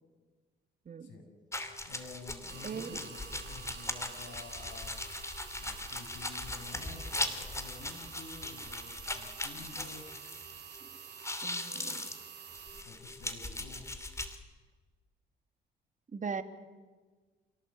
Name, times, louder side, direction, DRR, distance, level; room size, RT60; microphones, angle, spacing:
sound 1, 1.5-10.8 11.0-14.4, left 2 dB, 15° left, 2.9 m, -39 dB
voice 1, 1.8-5.0 5.6-10.1 12.8-13.9, left 4 dB, 75° left, 3 dB, 6.7 m, -50 dB
sound 2, 2.5-12.8, right 8 dB, 60° right, 3.1 m, -49 dB
voice 2, 2.6-3.0 10.8-10.9 11.4-12.1 16.1-16.4, right 6 dB, 40° right, 9 dB, 2.0 m, -39 dB
28.0 x 18.0 x 8.2 m, 1.4 s
cardioid pair, 90°, 20 cm